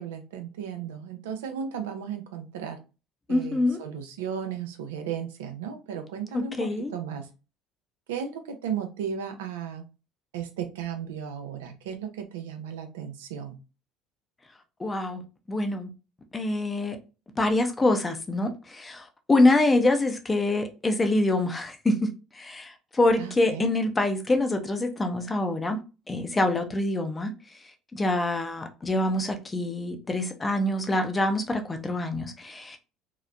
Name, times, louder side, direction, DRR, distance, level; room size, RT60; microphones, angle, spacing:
voice 1, 0.0-2.8 3.3-7.3 8.1-9.8 10.3-13.6 23.2-23.7, right 8 dB, 85° right, 0.4 m, -35 dB
voice 2, 3.3-3.8 6.3-6.9 14.8-15.2 15.5-15.9 16.3-17.0 17.4-25.8 26.1-27.3 27.9-32.8, left 2 dB, 20° left, 0.6 m, -25 dB
2.9 x 2.0 x 2.3 m
hypercardioid pair, 75°, 0 cm